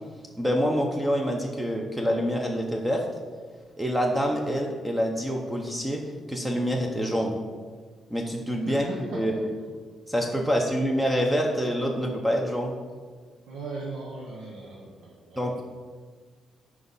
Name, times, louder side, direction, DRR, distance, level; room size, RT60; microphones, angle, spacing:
voice 1, 0.4-3.1 3.8-6.0 6.3-7.4 8.1-8.9 9.1-9.5 10.1-12.8 15.4-15.6, equal, 5° right, 1 dB, 0.6 m, -26 dB
voice 2, 13.5-15.4, right 3 dB, 85° right, -3 dB, 1.1 m, -38 dB
6.1 x 4.8 x 5.4 m, 1.5 s
cardioid pair, 160°, 0 cm